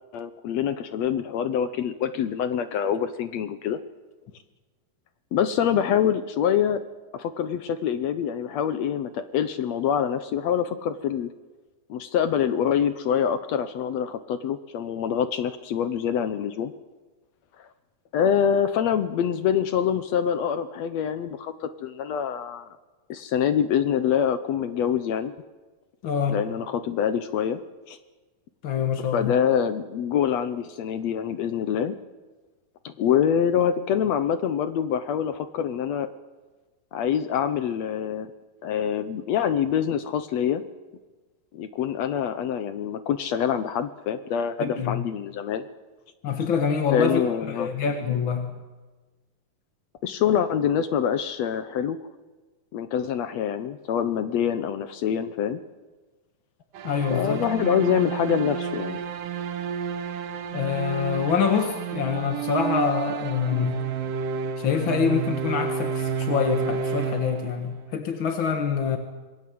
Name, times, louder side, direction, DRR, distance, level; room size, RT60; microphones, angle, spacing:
voice 1, 0.1-3.8 5.3-6.8 7.1-11.3 11.9-16.7 18.1-21.5 21.8-22.7 23.1-25.3 26.3-27.6 27.9-28.0 29.1-31.9 32.8-36.1 36.9-38.3 38.6-40.6 41.5-45.6 46.9-47.7 50.0-52.0 52.7-55.6 57.1-59.0, left 8 dB, 70° left, 11 dB, 1.7 m, -25 dB
voice 2, 26.0-26.4 28.6-29.3 44.6-45.0 46.2-48.5 56.8-57.8 60.5-63.8 64.6-69.0, left 7 dB, 50° left, 5 dB, 1.7 m, -26 dB
sound 1, 56.7-67.9, right 7 dB, 75° right, 2.9 m, -30 dB
26.5 x 21.0 x 7.8 m, 1.3 s
omnidirectional pair, 4.0 m